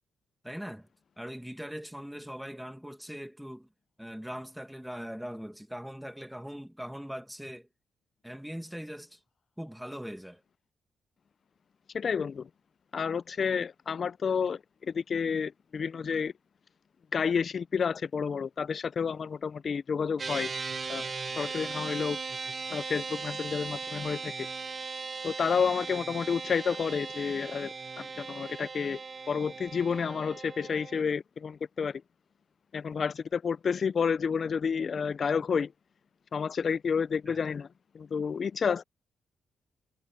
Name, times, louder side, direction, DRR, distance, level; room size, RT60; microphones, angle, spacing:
voice 1, 0.4-0.9 1.2-3.7 4.0-7.7 8.2-9.2 9.6-10.4 37.3-37.4, equal, ahead, 1.9 m, -41 dB
voice 2, 11.9-12.5 12.9-16.3 17.1-20.5 20.9-21.1 21.4-22.2 22.7-24.5 25.2-29.0 29.3-32.0 32.7-35.7 36.3-37.7 37.9-38.8, left 6 dB, 50° left, 0.5 m, -30 dB
sound 1, 20.2-31.0, right 4 dB, 40° right, 1.4 m, -38 dB
cardioid pair, 70°, 0 cm